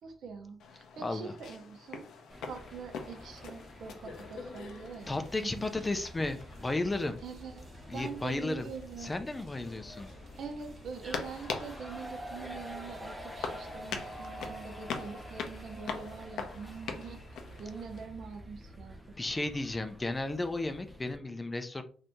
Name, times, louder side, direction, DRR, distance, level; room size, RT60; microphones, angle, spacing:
voice 1, 0.0-2.1 2.4-5.7 7.2-7.7 7.9-9.2 10.4-17.2 17.6-19.0, right 5 dB, 65° right, 5 dB, 0.8 m, -44 dB
sound 1, 0.6-18.1, left 5 dB, 75° left, 0.6 m, -44 dB
voice 2, 1.0-1.3 5.1-7.2 7.9-8.7 9.0-10.1 19.2-21.8, left 2 dB, 20° left, 8 dB, 0.4 m, -34 dB
sound 2, 2.3-21.2, equal, ahead, 0.9 m, -48 dB
sound 3, 5.0-19.0, right 1 dB, 40° right, 1.0 m, -53 dB
2.7 x 2.7 x 3.4 m, 0.41 s
cardioid pair, 90°, 0 cm